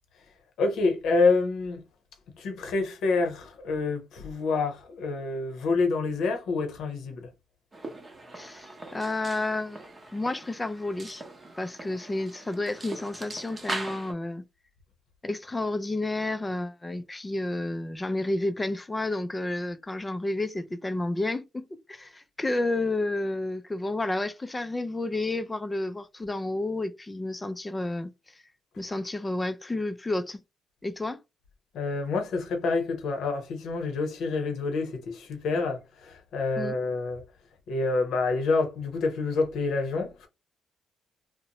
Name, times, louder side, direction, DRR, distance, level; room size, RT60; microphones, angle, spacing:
voice 1, 0.6-1.8 2.4-7.3 31.7-37.2 37.7-40.3, left 3 dB, 75° left, 0.7 m, -27 dB
sound 1, 7.7-14.1, right 2 dB, 25° right, 0.7 m, -41 dB
voice 2, 8.3-9.8 10.1-11.2 11.6-14.5 15.2-28.4 28.8-30.4 30.8-31.2 36.6-36.7, left 2 dB, 20° left, 0.4 m, -31 dB
2.5 x 2.0 x 2.9 m
cardioid pair, 90°, 0 cm